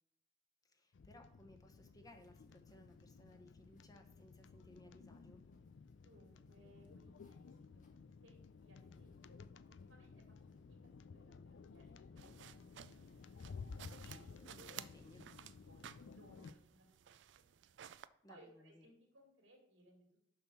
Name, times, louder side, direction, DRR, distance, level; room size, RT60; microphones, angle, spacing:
voice 1, 0.6-5.4 14.3-15.2 18.2-18.9, left 1 dB, 20° left, 4 dB, 1.0 m, -62 dB
sound 1, 0.9-16.5, left 5 dB, 75° left, 0.4 m, -56 dB
sound 2, 2.0-15.7, left 1 dB, 45° left, 1.5 m, -76 dB
voice 2, 6.0-9.4 9.7-10.4 10.7-13.5 14.0-14.8 15.4-17.6 18.3-20.1, right 1 dB, 85° right, 2 dB, 2.6 m, -66 dB
sound 3, 12.2-18.1, right 10 dB, 70° right, 0.4 m, -56 dB
6.8 x 6.1 x 5.7 m, 0.74 s
head